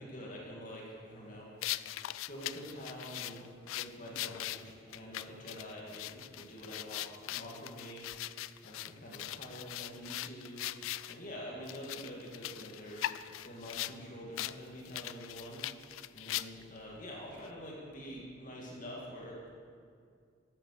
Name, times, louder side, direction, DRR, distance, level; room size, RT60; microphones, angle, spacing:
voice 1, 0.0-1.9 2.3-8.3 8.6-10.7 11.1-13.1 13.4-19.5, equal, 40° left, -3 dB, 2.2 m, -46 dB
sound 1, 1.6-11.2 11.7-14.0 14.4-14.6 14.8-16.8, left 14 dB, 90° left, 0.3 m, -40 dB
12.0 x 8.7 x 6.5 m, 2.2 s
head